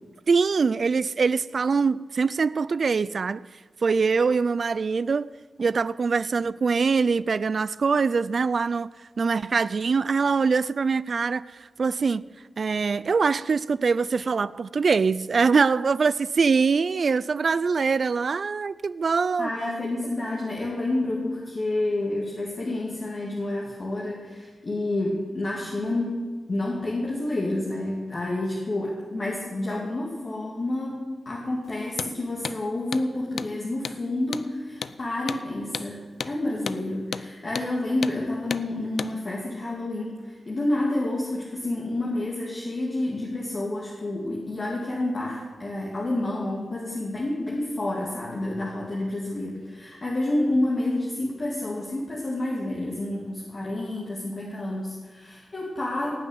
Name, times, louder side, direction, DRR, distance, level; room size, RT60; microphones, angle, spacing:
voice 1, 0.3-3.4 3.8-5.3 5.6-8.9 9.2-12.2 12.6-19.5, right 5 dB, 55° right, 0.3 m, -23 dB
voice 2, 19.4-26.2 26.5-56.1, left 1 dB, 40° left, 2.6 m, -29 dB
Hammer, 31.9-32.1 32.4-32.6 32.9-33.1 33.4-33.5 33.8-34.0 34.3-34.5 34.8-35.0 35.3-35.4 35.7-35.9 36.2-36.3 36.7-36.8 37.1-37.3 37.6-37.7 38.0-38.2 38.5-38.7 39.0-39.1, left 6 dB, 75° left, 0.5 m, -32 dB
17.5 x 6.8 x 9.4 m
wide cardioid pair, 125°, 0 cm